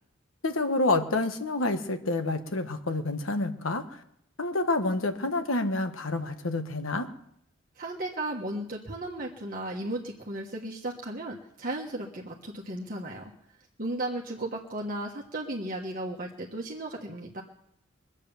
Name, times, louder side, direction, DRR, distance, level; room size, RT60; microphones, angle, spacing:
voice 1, 0.4-4.0 4.4-7.1, left 2 dB, 85° left, 8 dB, 1.3 m, -28 dB
voice 2, 7.7-13.3 13.8-17.4, right 1 dB, 40° right, -2 dB, 1.4 m, -35 dB
22.5 x 8.4 x 7.0 m, 0.75 s
head